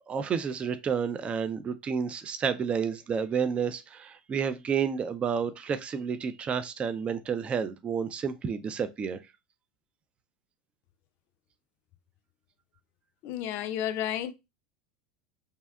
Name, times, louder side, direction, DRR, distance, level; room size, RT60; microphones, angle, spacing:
voice 1, 0.1-9.2, right 6 dB, 25° right, 0.3 m, -30 dB
voice 2, 13.2-14.3, left 11 dB, 55° left, 0.4 m, -31 dB
2.7 x 2.2 x 2.2 m
hypercardioid pair, 95°, 5 cm